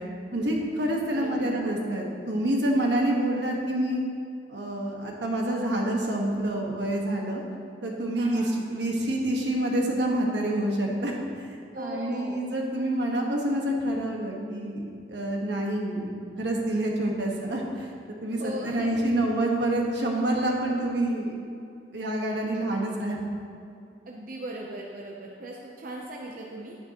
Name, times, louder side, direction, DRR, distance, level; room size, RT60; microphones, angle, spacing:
voice 1, 0.3-4.0 4.5-7.4 7.8-11.1 11.4-16.1 16.4-17.9 18.2-18.4 18.6-21.3 21.9-23.2, right 1 dB, 80° right, -1 dB, 1.4 m, -27 dB
voice 2, 1.1-1.6 8.2-8.5 11.7-12.4 18.3-19.0 24.1-26.8, right 1 dB, 50° right, -2 dB, 0.7 m, -38 dB
10.5 x 9.5 x 3.0 m, 2.5 s
head